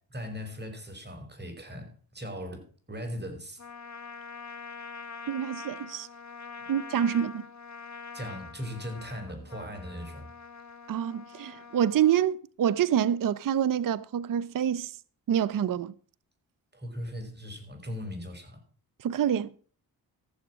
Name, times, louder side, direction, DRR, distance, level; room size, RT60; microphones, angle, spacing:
voice 1, 0.1-3.6 6.6-6.7 7.1-7.2 8.1-10.3 16.7-18.6, equal, 25° right, 5.3 m, -39 dB
Trumpet, 3.6-12.3, left 5 dB, 40° left, 1.6 m, -44 dB
voice 2, 5.3-6.1 6.7-7.4 10.9-15.0 15.3-15.9 19.0-19.5, right 9 dB, 50° right, 0.7 m, -27 dB
14.5 x 7.1 x 6.2 m
supercardioid pair, 45°, 43 cm